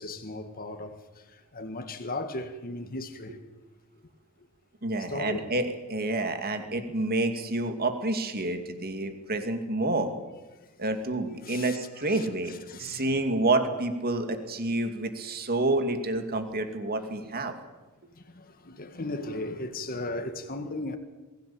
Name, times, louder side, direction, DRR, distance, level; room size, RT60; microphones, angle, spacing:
voice 1, 0.0-3.4 5.1-5.5 11.4-11.8 12.1-13.2 16.9-17.1 18.2-21.0, left 2 dB, 40° left, 1.9 m, -37 dB
voice 2, 4.8-10.1 10.8-17.5, right 2 dB, 45° right, 2.5 m, -29 dB
22.5 x 16.0 x 8.7 m
head